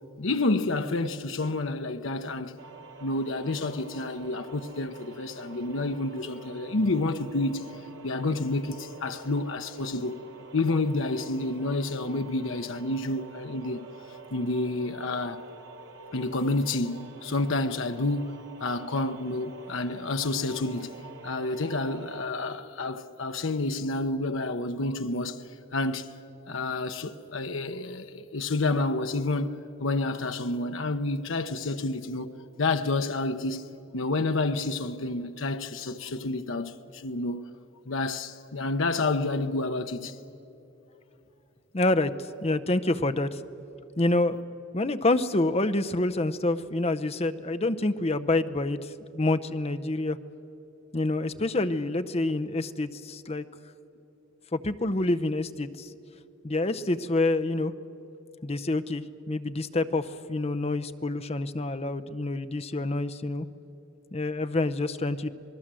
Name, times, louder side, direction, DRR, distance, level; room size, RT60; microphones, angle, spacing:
voice 1, 0.2-2.6 3.0-7.6 8.0-10.2 10.5-13.9 14.3-15.4 16.1-26.1 26.5-32.3 32.6-33.6 33.9-37.5 37.9-40.2, left 2 dB, 65° left, 0.9 m, -29 dB
sound 1, 2.6-22.3, right 3 dB, 65° right, 1.2 m, -47 dB
voice 2, 41.7-43.4 44.0-44.4 44.7-50.2 50.9-53.4 54.5-55.9 56.4-57.7 58.4-63.5 64.1-65.3, left 2 dB, 30° left, 0.7 m, -27 dB
27.0 x 19.5 x 7.6 m
head